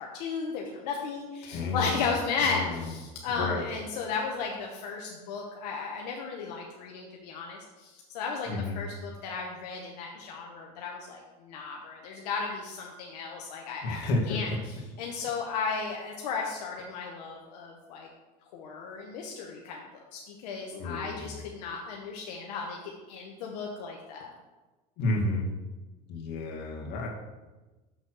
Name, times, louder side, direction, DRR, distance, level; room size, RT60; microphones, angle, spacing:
voice 1, 0.0-14.5 15.0-18.1 18.5-22.8 23.1-24.3, left 5 dB, 80° left, 0 dB, 1.0 m, -35 dB
voice 2, 1.4-2.0 2.4-2.8 3.3-3.7 8.5-8.8 13.8-14.6 20.7-21.4 25.0-25.5 26.1-27.1, left 2 dB, 55° left, -1 dB, 1.9 m, -31 dB
6.4 x 4.2 x 6.2 m, 1.2 s
supercardioid pair, 115°, 20 cm